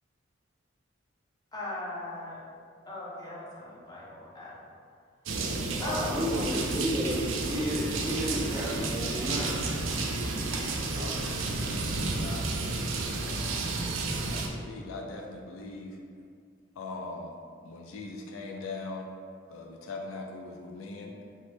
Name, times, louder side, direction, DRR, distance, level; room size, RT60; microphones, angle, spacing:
voice 1, 1.5-2.4 2.9-4.6 5.8-6.6 8.7-8.9, left 2 dB, 20° left, -6 dB, 0.6 m, -38 dB
sound 1, 5.3-14.5, right 3 dB, 75° right, 0.3 m, -31 dB
voice 2, 5.8-9.5 10.9-11.0, equal, 30° right, -19 dB, 1.4 m, -32 dB
voice 3, 10.8-13.6 14.3-16.0 16.8-17.3 17.6-19.1 19.5-21.1, left 3 dB, 85° left, 1 dB, 0.3 m, -41 dB
3.0 x 2.0 x 3.1 m, 2.2 s
head